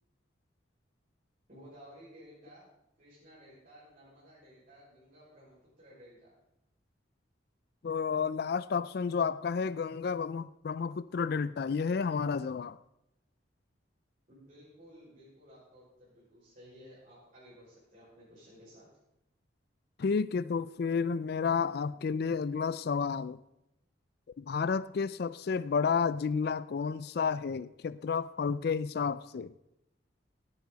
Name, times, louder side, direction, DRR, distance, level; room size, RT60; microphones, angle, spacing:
voice 1, 1.5-2.7 3.0-6.3 14.3-18.9, equal, 45° right, -10 dB, 5.6 m, -55 dB
voice 2, 7.8-12.8 20.0-23.4 24.4-29.5, left 5 dB, 55° left, 16 dB, 0.3 m, -31 dB
17.0 x 9.7 x 4.0 m, 0.86 s
head